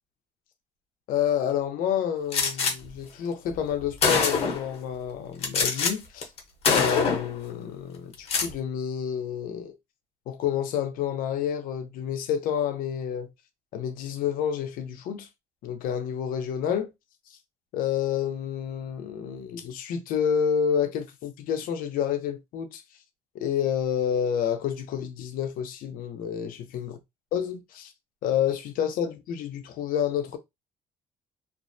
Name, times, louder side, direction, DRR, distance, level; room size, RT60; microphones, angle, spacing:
voice 1, 1.1-6.3 6.7-9.7 10.3-13.3 13.7-15.3 15.6-16.9 17.7-22.8 23.3-26.9 27.3-27.9 28.2-30.4, left 8 dB, 75° left, 0.6 m, -29 dB
Gunshot gunfire, 2.3-2.7 3.6-3.7 4.0-4.7 5.4-5.9 6.2-6.4 6.6-7.3 8.1-8.5, left 5 dB, 40° left, 0.7 m, -24 dB
2.4 x 2.0 x 2.5 m
cardioid pair, 150°, 15 cm